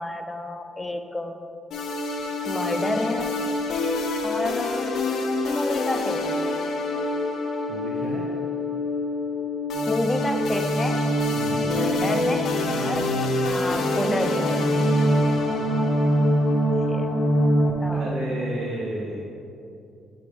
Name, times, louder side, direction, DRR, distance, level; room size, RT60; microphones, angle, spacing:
voice 1, 0.0-1.4 2.5-3.4 4.2-4.9 5.4-6.5 9.9-11.1 11.6-13.1 13.5-15.0 16.9-17.1 17.6-18.3, left 1 dB, 15° left, 6 dB, 0.4 m, -30 dB
sound 1, 1.7-17.7, left 1 dB, 70° left, 0.6 m, -24 dB
voice 2, 7.7-8.3 11.3-11.7 17.9-19.3, right 1 dB, 70° right, -2 dB, 0.7 m, -32 dB
5.0 x 3.8 x 5.1 m, 2.7 s
cardioid pair, 90°, 0 cm